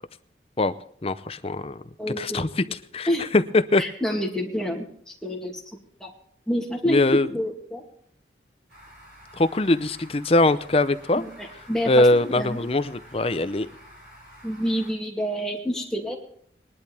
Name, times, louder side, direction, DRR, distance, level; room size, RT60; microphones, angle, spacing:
voice 1, 1.0-1.8 2.2-2.6 2.9-3.8 6.8-7.3 9.4-11.2 11.9-13.7, left 2 dB, 30° left, 13 dB, 0.6 m, -22 dB
voice 2, 2.0-2.4 3.1-3.3 3.8-5.6 6.0-6.1 6.5-7.8 11.2-12.6 14.4-16.2, equal, 5° left, -1 dB, 2.3 m, -28 dB
sound 1, 8.7-14.9, equal, 60° right, 5.6 m, -49 dB
20.5 x 11.0 x 3.4 m, 0.65 s
head